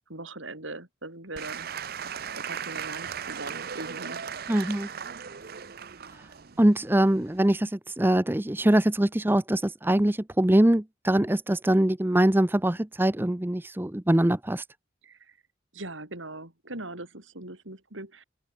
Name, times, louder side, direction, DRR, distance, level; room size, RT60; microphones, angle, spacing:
voice 1, 0.1-1.9 2.3-4.2 4.5-4.8 15.0-15.4 15.7-18.2, right 2 dB, 75° right, 5.4 m, -41 dB
Applause / Crowd, 1.3-7.6, right 7 dB, 50° right, 0.8 m, -37 dB
voice 2, 4.5-4.9 6.6-14.6, right 1 dB, 10° right, 0.6 m, -23 dB
head